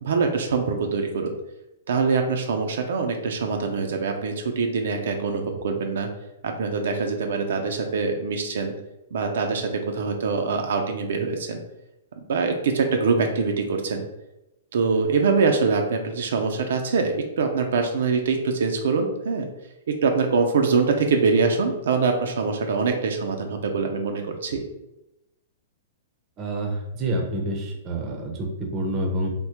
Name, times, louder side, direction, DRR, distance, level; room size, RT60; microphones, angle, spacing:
voice 1, 0.0-1.3 1.9-6.1 6.4-8.7 9.1-11.6 12.3-14.1 14.7-19.5 19.9-24.6, right 4 dB, 75° right, 4 dB, 0.4 m, -24 dB
voice 2, 26.4-29.3, right 1 dB, 25° right, 2 dB, 0.5 m, -28 dB
3.4 x 2.1 x 2.8 m, 0.92 s
hypercardioid pair, 150°, 0 cm